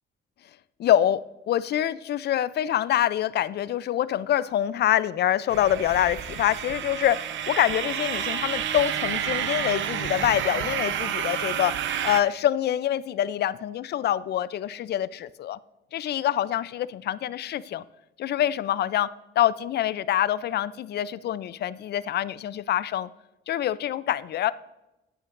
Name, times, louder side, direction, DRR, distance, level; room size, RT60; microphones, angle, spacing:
voice 1, 0.8-11.8 12.0-15.6 15.9-17.8 18.2-23.1 23.5-24.5, left 11 dB, 55° left, 0.4 m, -25 dB
sound 1, 5.5-12.2, right 9 dB, 70° right, 0.7 m, -30 dB
10.5 x 8.9 x 2.5 m
cardioid pair, 90°, 20 cm